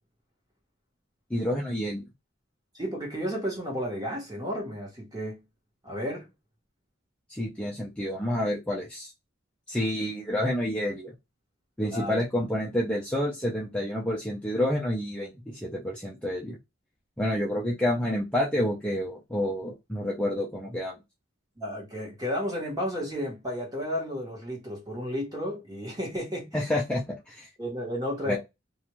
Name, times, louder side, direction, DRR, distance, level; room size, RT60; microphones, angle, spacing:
voice 1, 1.3-2.0 7.3-9.1 9.7-11.1 11.8-16.6 17.2-20.9 26.5-27.5 28.2-28.4, left 1 dB, 5° left, 0.4 m, -29 dB
voice 2, 2.7-5.4 5.8-6.3 11.9-12.1 21.6-26.7 27.6-28.4, equal, 20° right, 1.1 m, -32 dB
2.4 x 2.3 x 3.0 m
head